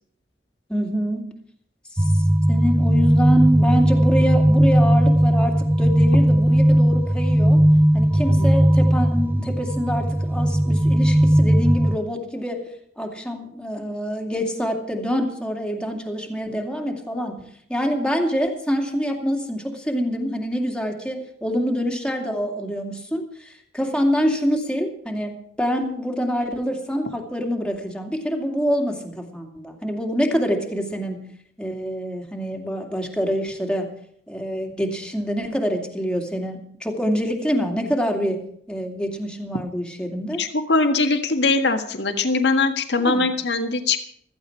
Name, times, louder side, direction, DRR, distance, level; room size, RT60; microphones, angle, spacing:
voice 1, 0.7-1.3 2.5-7.6 7.9-12.7 13.0-17.4 17.7-34.0 34.3-40.4 43.0-43.3, equal, 5° left, 2 dB, 2.5 m, -26 dB
sound 1, 2.0-12.0, right 1 dB, 10° right, 0.5 m, -17 dB
voice 2, 40.4-44.0, left 3 dB, 70° left, 6 dB, 1.7 m, -21 dB
15.5 x 14.5 x 4.6 m, 0.65 s
head